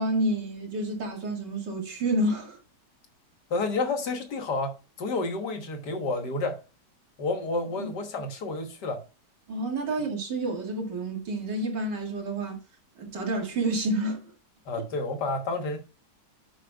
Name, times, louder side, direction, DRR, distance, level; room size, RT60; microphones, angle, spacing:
voice 1, 0.0-2.6 7.8-7.9 9.5-12.6 13.0-14.3 14.7-14.8, right 1 dB, 75° right, 2.7 m, -29 dB
voice 2, 3.5-6.6 7.2-9.0 14.7-15.8, left 3 dB, 70° left, 2.0 m, -30 dB
9.9 x 7.5 x 2.4 m
omnidirectional pair, 1.9 m